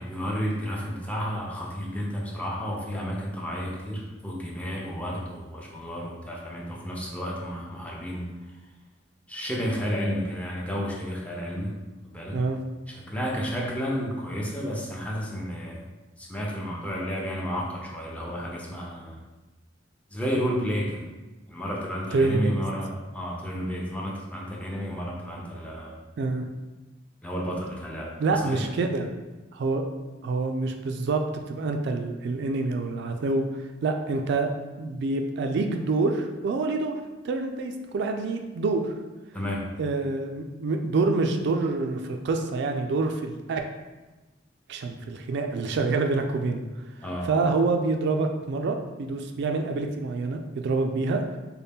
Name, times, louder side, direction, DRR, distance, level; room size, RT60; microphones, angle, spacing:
voice 1, 0.0-8.3 9.3-11.7 12.0-12.4 12.9-15.8 16.2-19.2 20.1-21.1 21.5-26.0 27.2-28.7 39.3-39.7 47.0-47.3, equal, 5° left, -3 dB, 0.6 m, -31 dB
voice 2, 28.2-29.1 29.5-29.8 30.2-34.5 34.8-36.9 37.2-38.9 39.8-43.6 44.7-46.6 47.2-51.4, right 3 dB, 60° right, 5 dB, 0.3 m, -27 dB
4.1 x 2.2 x 3.5 m, 1.2 s
head